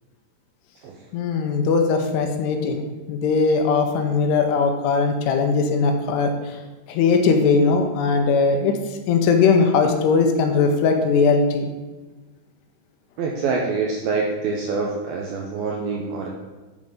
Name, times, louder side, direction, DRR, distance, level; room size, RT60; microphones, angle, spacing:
voice 1, 1.1-6.3 6.9-8.7 9.1-11.7, left 4 dB, 80° left, 4 dB, 2.7 m, -19 dB
voice 2, 13.2-16.3, right 4 dB, 85° right, 0 dB, 2.1 m, -25 dB
10.5 x 4.0 x 4.9 m, 1.3 s
omnidirectional pair, 5.0 m